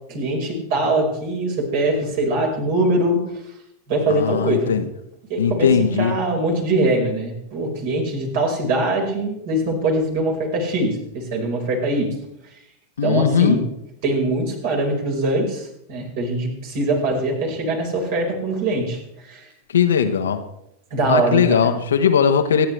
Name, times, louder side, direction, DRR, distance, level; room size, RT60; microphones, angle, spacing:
voice 1, 0.1-3.2 3.9-4.7 5.3-12.1 13.0-13.6 14.0-19.5 20.9-21.7, right 2 dB, 50° right, 0 dB, 4.8 m, -22 dB
voice 2, 4.1-4.9 5.4-6.1 13.0-13.6 19.7-20.4 21.1-22.7, left 7 dB, 65° left, 7 dB, 1.2 m, -18 dB
25.5 x 10.5 x 3.3 m, 0.80 s
figure-of-eight pair, 90°, 0 cm